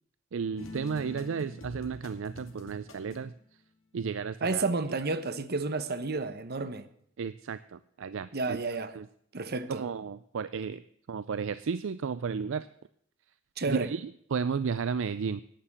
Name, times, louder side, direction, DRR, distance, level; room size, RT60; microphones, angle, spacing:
voice 1, 0.3-3.3 3.9-4.7 7.2-8.6 8.9-9.1 9.7-12.7 13.7-15.4, right 6 dB, 65° right, 0.4 m, -33 dB
sound 1, 0.6-3.4, left 2 dB, 70° left, 2.3 m, -46 dB
voice 2, 4.4-6.9 8.3-8.9 9.3-9.8 13.6-13.9, right 3 dB, 50° right, 1.0 m, -31 dB
11.5 x 8.9 x 7.2 m
head